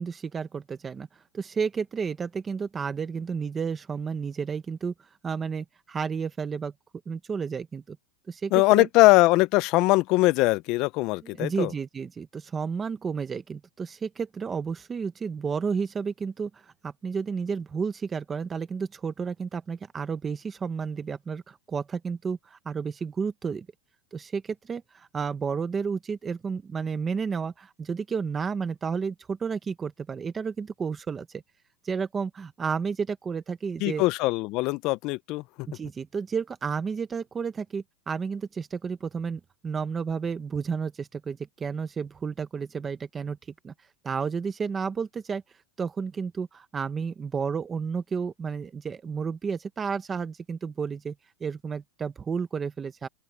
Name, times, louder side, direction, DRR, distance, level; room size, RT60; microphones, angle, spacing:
voice 1, 0.0-4.9 5.2-6.7 7.1-8.0 8.3-8.9 11.2-23.7 24.1-31.4 31.8-34.0 35.7-43.4 43.6-43.7 44.0-45.4 45.8-51.1 51.4-53.1, right 6 dB, 10° right, 0.7 m, -31 dB
voice 2, 8.5-11.7 33.8-35.7, left 21 dB, 35° left, 0.4 m, -21 dB
open air
supercardioid pair, 175°, 0 cm